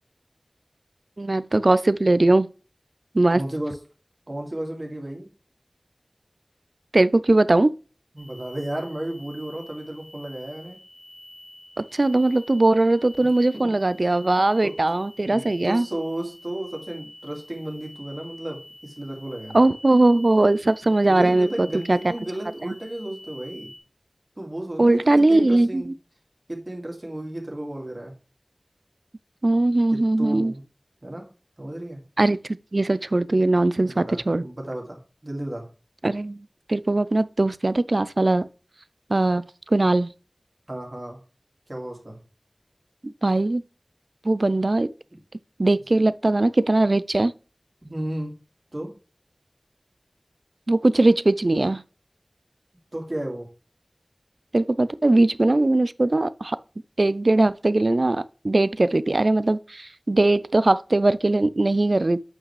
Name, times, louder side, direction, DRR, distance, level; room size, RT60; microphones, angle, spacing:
voice 1, 1.2-2.5 3.1-3.4 6.9-7.7 11.8-15.9 19.5-22.0 22.7-22.8 24.8-25.9 29.4-30.5 32.2-32.4 32.7-34.4 36.0-38.5 39.1-40.1 43.0-43.6 44.2-44.9 45.6-47.3 50.7-51.8 54.5-56.6 57.0-62.2, right 2 dB, 65° right, 0.4 m, -20 dB
voice 2, 3.3-3.8 4.3-5.3 8.1-10.8 13.5-14.1 14.6-14.8 15.3-19.6 21.0-23.7 24.4-25.9 26.5-28.1 29.9-30.6 31.0-31.3 31.6-32.0 33.8-35.7 40.7-41.2 41.7-42.2 45.1-45.2 47.8-48.4 48.7-49.0 52.9-53.5, right 1 dB, 45° right, 2.3 m, -33 dB
sound 1, 8.2-23.8, left 1 dB, 50° left, 1.6 m, -47 dB
8.4 x 5.2 x 3.2 m
wide cardioid pair, 45°, 0 cm